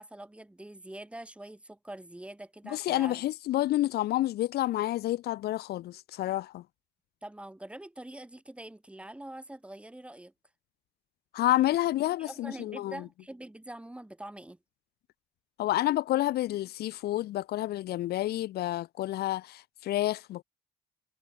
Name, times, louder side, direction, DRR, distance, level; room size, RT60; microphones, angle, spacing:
voice 1, 0.0-3.2 7.2-10.3 12.2-14.6, right 1 dB, 5° right, 4.3 m, -44 dB
voice 2, 2.7-6.6 11.3-12.9 15.6-20.4, left 15 dB, 70° left, 1.2 m, -29 dB
cardioid pair, 110°, 17 cm